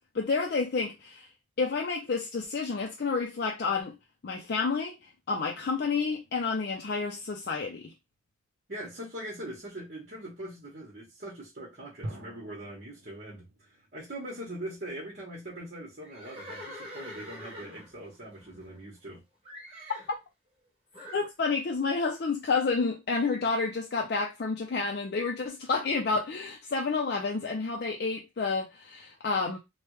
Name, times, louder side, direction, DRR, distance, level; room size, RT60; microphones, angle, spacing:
voice 1, 0.1-1.3 1.6-4.0 4.2-5.0 5.3-7.9 21.1-29.6, left 4 dB, 50° left, 0.4 m, -29 dB
sound 1, 6.0-7.3 12.0-13.9, right 1 dB, 70° right, 0.8 m, -45 dB
voice 2, 8.7-19.2, right 1 dB, 50° right, 1.1 m, -42 dB
Livestock farm animals working animals, 16.0-19.1 19.4-20.1 20.9-21.3, equal, 30° right, 0.8 m, -45 dB
3.3 x 2.2 x 3.1 m
head